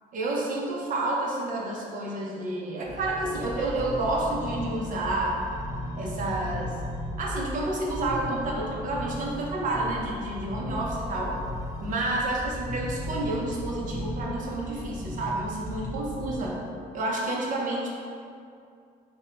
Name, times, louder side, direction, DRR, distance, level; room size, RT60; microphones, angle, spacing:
voice 1, 0.1-5.4 6.0-6.7 7.2-11.3 11.8-16.6 16.9-17.9, right 2 dB, 50° right, -2 dB, 0.7 m, -29 dB
sound 1, 2.8-16.5, left 1 dB, 25° left, 0.5 m, -36 dB
3.5 x 2.2 x 3.8 m, 2.4 s
cardioid pair, 110°, 17 cm